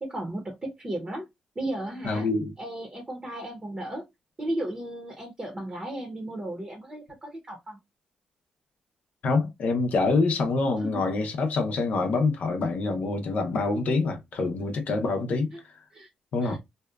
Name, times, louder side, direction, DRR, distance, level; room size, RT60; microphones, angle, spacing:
voice 1, 0.0-1.3 1.6-2.3 2.6-4.0 4.4-7.8 10.8-11.0 15.5-15.6 15.9-16.1 16.4-16.6, right 1 dB, 30° right, 0.8 m, -35 dB
voice 2, 2.0-2.5 9.2-15.5 16.3-16.6, left 3 dB, 70° left, 0.6 m, -26 dB
2.7 x 2.2 x 2.3 m
cardioid pair, 80°, 3 cm